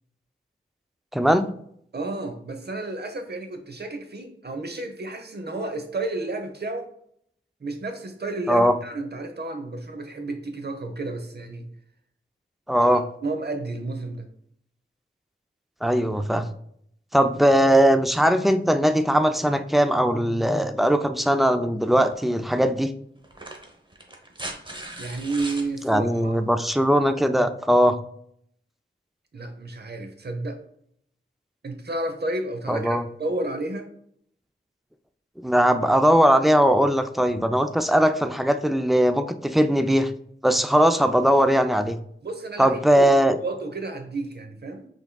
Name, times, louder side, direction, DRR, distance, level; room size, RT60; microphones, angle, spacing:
voice 1, 1.1-1.5 8.5-8.7 12.7-13.0 15.8-16.5 17.1-22.9 25.8-28.0 32.7-33.0 35.4-40.1 40.4-42.0 42.6-43.4, equal, ahead, 8 dB, 0.4 m, -20 dB
voice 2, 1.9-6.9 7.6-11.7 12.8-14.3 25.0-26.5 29.3-30.6 31.6-33.9 42.2-43.1 43.4-44.9, right 2 dB, 55° right, 6 dB, 0.8 m, -31 dB
sound 1, 22.1-22.2 23.2-25.7 27.2-27.3, right 1 dB, 25° right, 0.9 m, -38 dB
5.7 x 3.6 x 2.3 m, 0.69 s
wide cardioid pair, 65°, 20 cm